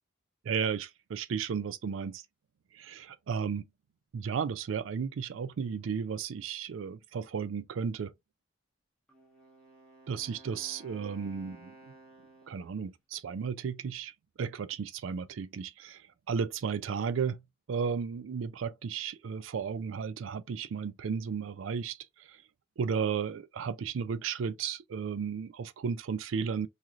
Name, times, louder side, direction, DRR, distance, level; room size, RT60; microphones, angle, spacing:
voice 1, 0.4-2.2 2.7-3.7 4.1-8.1 10.1-11.7 12.5-14.1 14.4-17.4 17.7-22.4 22.8-26.7, right 6 dB, 90° right, 0.4 m, -34 dB
Wind instrument woodwind instrument, 9.1-12.9, right 2 dB, 5° left, 1.0 m, -55 dB
3.0 x 2.5 x 2.4 m
head